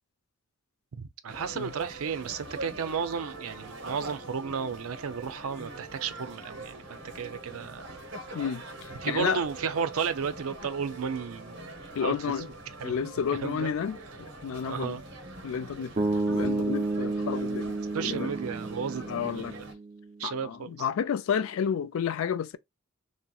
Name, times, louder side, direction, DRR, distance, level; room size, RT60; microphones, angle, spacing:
voice 1, 0.9-8.0 9.0-11.8 12.0-12.1 12.8-12.9 13.4-13.7 14.6-15.0 17.9-19.6 20.2-20.9, right 6 dB, 85° right, 0.5 m, -33 dB
sound 1, 1.3-19.7, right 2 dB, 55° right, 0.8 m, -43 dB
voice 2, 8.3-9.4 11.9-12.5 12.8-14.0 14.4-15.0 15.4-15.9 16.3-18.3 19.1-19.5 20.2-22.6, left 7 dB, 75° left, 0.3 m, -31 dB
sound 2, 16.0-20.1, right 2 dB, 30° right, 0.5 m, -31 dB
3.2 x 2.8 x 2.3 m
head